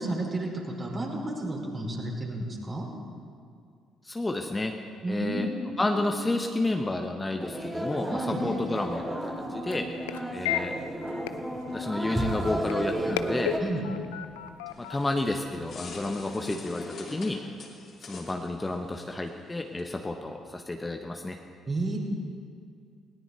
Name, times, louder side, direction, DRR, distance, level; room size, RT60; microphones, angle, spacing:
voice 1, 0.0-2.8 5.0-6.0 8.1-8.4 13.6-13.8 21.7-22.0, right 2 dB, 35° right, -2 dB, 4.6 m, -32 dB
voice 2, 4.0-4.8 5.1-5.5 5.8-9.9 10.3-10.7 11.7-13.6 14.8-17.4 18.0-21.4, left 2 dB, 20° left, 4 dB, 1.2 m, -31 dB
sound 1, 7.4-13.6, right 1 dB, 10° right, 3.0 m, -32 dB
sound 2, 8.3-16.1, left 11 dB, 80° left, 0.5 m, -38 dB
sound 3, 14.7-19.9, left 3 dB, 50° left, 3.0 m, -45 dB
19.5 x 18.0 x 4.1 m, 2.2 s
hypercardioid pair, 50°, 0 cm